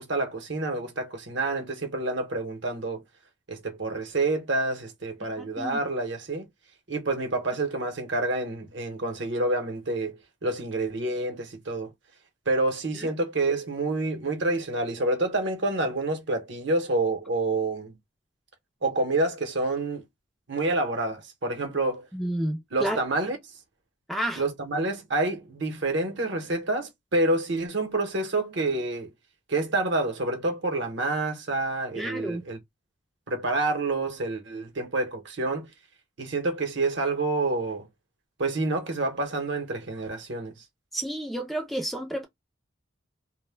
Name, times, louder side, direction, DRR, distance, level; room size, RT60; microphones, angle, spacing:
voice 1, 0.0-3.0 3.5-6.5 6.9-11.9 12.5-18.0 18.8-20.0 20.5-22.1 22.7-23.4 24.4-29.1 29.5-32.6 33.3-35.7 36.2-37.9 38.4-40.6, right 2 dB, 60° right, 0.8 m, -28 dB
voice 2, 22.1-23.0 24.1-24.4 32.0-32.4 40.9-42.3, right 1 dB, ahead, 0.3 m, -30 dB
2.1 x 2.1 x 3.3 m
head